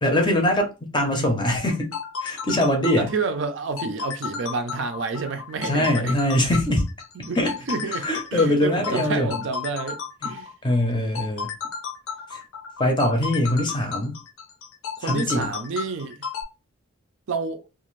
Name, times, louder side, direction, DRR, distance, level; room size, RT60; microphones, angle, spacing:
voice 1, 0.0-1.9 2.2-3.1 5.6-6.9 7.4-7.5 8.0-9.4 10.2-10.3 10.6-11.5 12.3-12.4 12.8-14.2 15.0-15.5, left 1 dB, 20° left, 0.6 m, -22 dB
sound 1, 1.7-16.4, left 6 dB, 75° left, 0.7 m, -33 dB
voice 2, 3.0-6.2 7.2-7.4 7.7-10.5 15.0-16.2 17.3-17.6, right 4 dB, 60° right, 0.4 m, -29 dB
2.5 x 2.4 x 3.1 m
head